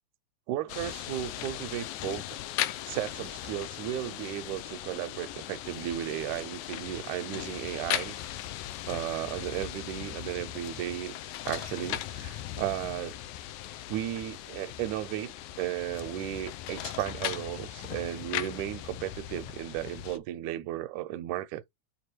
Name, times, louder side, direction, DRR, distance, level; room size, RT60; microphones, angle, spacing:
voice 1, 0.5-2.4 2.8-8.2 8.9-13.2 13.9-21.6, right 13 dB, 85° right, 2.0 m, -35 dB
sound 1, 0.7-20.2, left 13 dB, 90° left, 2.1 m, -38 dB
6.9 x 3.6 x 4.4 m
omnidirectional pair, 3.4 m